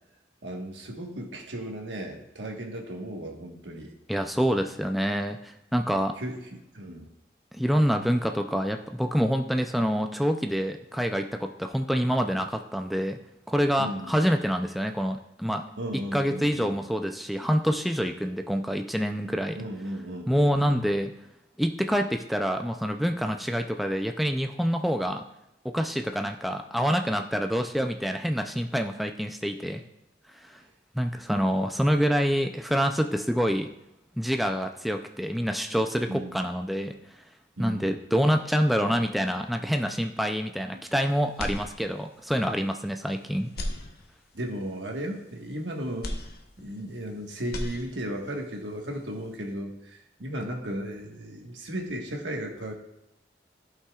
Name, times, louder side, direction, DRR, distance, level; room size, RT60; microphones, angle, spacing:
voice 1, 0.4-3.9 6.2-7.1 13.8-14.1 15.8-16.8 19.6-20.8 36.1-36.4 37.6-37.9 40.7-40.8 44.3-46.1 46.6-52.7, right 1 dB, 90° right, 1 dB, 1.4 m, -35 dB
voice 2, 4.1-6.2 7.5-13.2 13.5-15.6 15.9-19.6 20.3-21.1 21.6-25.2 25.6-29.8 30.4-30.5 30.9-33.7 34.2-36.9 37.6-43.5, equal, ahead, 4 dB, 0.3 m, -26 dB
sound 1, 41.3-42.3 42.7-42.8 43.4-44.5 46.0-47.1 47.4-48.3, left 1 dB, 55° left, 0.9 m, -36 dB
14.5 x 5.7 x 2.3 m, 0.87 s
head